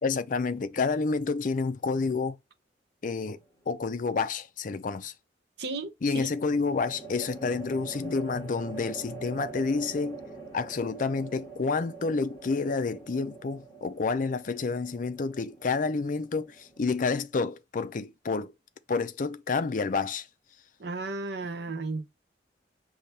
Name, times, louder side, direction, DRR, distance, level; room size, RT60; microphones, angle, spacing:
voice 1, 0.0-2.4 3.0-3.4 3.7-5.1 6.0-10.2 10.5-18.5 18.9-20.3, left 4 dB, 45° left, 0.4 m, -29 dB
sound 1, 3.1-3.6 6.2-17.5, right 4 dB, 15° left, 1.8 m, -45 dB
voice 2, 5.6-6.3 20.8-22.1, right 3 dB, 65° right, 0.7 m, -34 dB
5.5 x 2.8 x 3.3 m
head